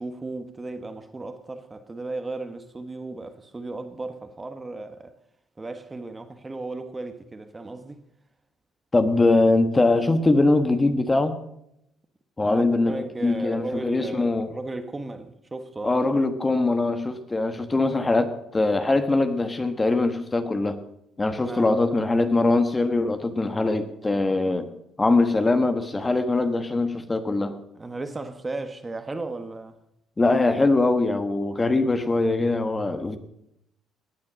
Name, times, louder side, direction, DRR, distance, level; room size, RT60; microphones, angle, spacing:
voice 1, 0.0-5.1 5.6-8.0 12.4-16.0 21.4-21.9 27.7-29.8, right 2 dB, 20° right, 1.2 m, -35 dB
voice 2, 8.9-11.3 12.4-14.5 15.8-20.8 21.2-24.7 25.0-27.6 30.2-33.2, left 2 dB, 15° left, 1.2 m, -22 dB
18.0 x 9.6 x 6.3 m
cardioid pair, 120°, 0 cm